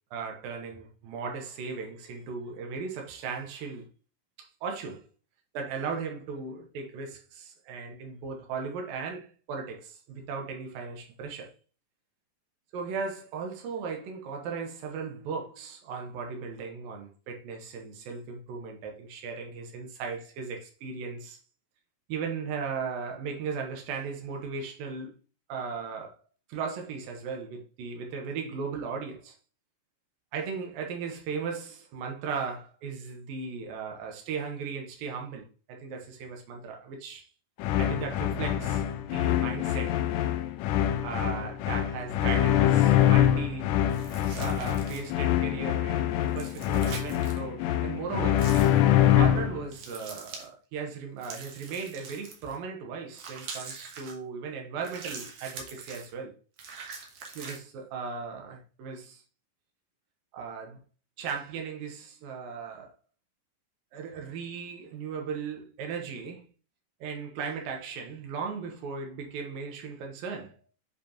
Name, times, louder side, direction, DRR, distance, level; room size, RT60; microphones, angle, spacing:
voice 1, 0.1-3.9 4.4-5.1 5.5-11.5 12.7-21.4 22.1-25.1 25.5-26.1 26.5-29.4 30.3-37.3 37.8-40.0 41.0-43.8 44.4-48.5 49.1-56.3 57.4-59.2 60.3-60.8 61.2-62.9 63.9-66.5 67.0-70.6, right 5 dB, 90° right, 2.9 m, -37 dB
sound 1, 37.6-49.6, left 11 dB, 80° left, 2.0 m, -25 dB
sound 2, 43.9-45.2 46.3-47.4 48.4-48.8 49.7-50.5 51.2-52.6 53.1-54.1 54.8-56.1 56.6-57.6, right 5 dB, 65° right, 2.5 m, -43 dB
8.0 x 4.7 x 2.9 m
omnidirectional pair, 4.0 m